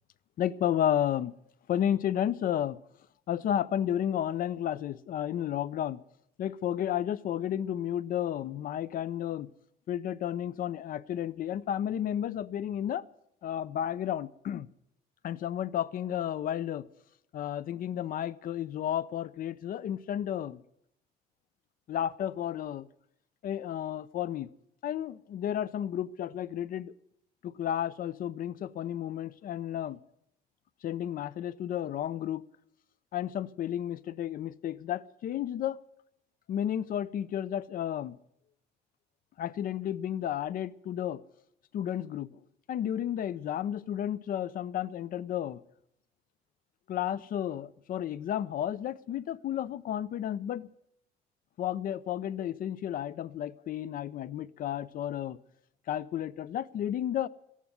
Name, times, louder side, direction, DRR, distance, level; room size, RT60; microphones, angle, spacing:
voice 1, 0.4-1.3 1.7-2.8 3.3-6.0 6.4-9.5 9.9-13.0 13.4-14.7 15.2-16.9 17.3-20.6 21.9-22.9 23.4-24.5 24.8-26.9 27.4-30.0 30.8-32.4 33.1-35.8 36.5-38.2 39.4-41.2 41.7-42.4 42.7-45.6 46.9-50.7 51.6-55.4 55.9-57.3, left 10 dB, 55° left, 0.6 m, -32 dB
13.5 x 11.0 x 9.4 m
cardioid pair, 110°, 17 cm